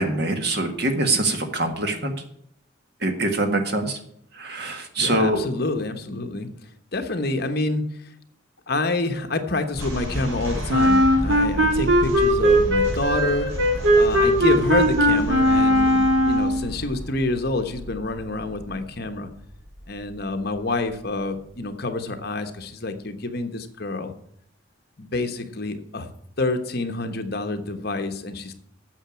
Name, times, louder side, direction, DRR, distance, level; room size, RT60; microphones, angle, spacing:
voice 1, 0.0-2.1 3.0-4.0 4.3-5.4, right 2 dB, 55° right, 6 dB, 1.7 m, -24 dB
voice 2, 5.0-6.5 6.9-8.1 8.7-13.5 13.9-19.3 19.9-24.1 25.0-26.1 26.4-28.5, left 2 dB, 50° left, 7 dB, 1.2 m, -27 dB
sound 1, 9.7-21.0, equal, 85° right, 4.0 m, -33 dB
Wind instrument woodwind instrument, 10.7-16.6, equal, 70° right, 1.7 m, -19 dB
8.9 x 7.0 x 8.7 m, 0.69 s
head